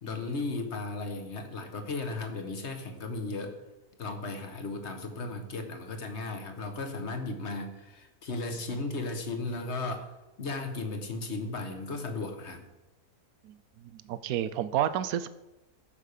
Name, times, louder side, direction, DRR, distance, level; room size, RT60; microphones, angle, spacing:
voice 1, 0.0-3.6 4.0-10.1 10.4-12.7, left 3 dB, 50° left, 6 dB, 1.5 m, -35 dB
voice 2, 13.8-15.3, right 11 dB, 75° right, 14 dB, 1.1 m, -30 dB
14.0 x 5.5 x 6.6 m, 1.0 s
omnidirectional pair, 1.6 m